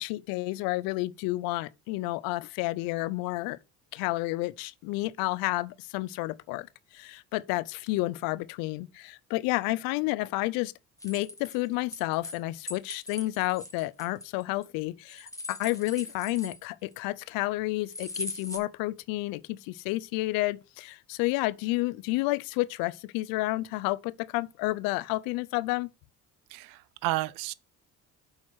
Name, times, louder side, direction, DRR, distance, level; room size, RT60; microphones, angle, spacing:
voice 1, 0.0-3.6 3.9-6.7 6.9-10.7 11.0-25.9, left 20 dB, 80° left, 0.6 m, -30 dB
sound 1, 11.0-12.4 12.7-14.6 15.1-16.9 17.9-18.6, left 2 dB, 10° left, 2.2 m, -40 dB
voice 2, 26.5-27.5, right 17 dB, 75° right, 0.5 m, -31 dB
6.4 x 4.1 x 6.3 m
supercardioid pair, 75°, 34 cm